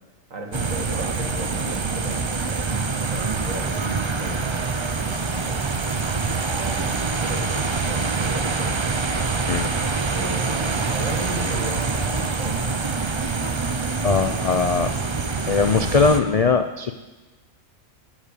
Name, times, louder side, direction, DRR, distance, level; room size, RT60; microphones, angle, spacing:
voice 1, 0.3-5.7 6.5-8.7 10.0-12.8, right 2 dB, 75° right, 2 dB, 2.2 m, -35 dB
sound 1, 0.5-16.2, right 4 dB, 35° right, 0.5 m, -25 dB
voice 2, 14.0-14.9 15.5-16.9, left 4 dB, 75° left, 7 dB, 0.3 m, -20 dB
16.0 x 5.8 x 8.4 m, 1.2 s
omnidirectional pair, 1.4 m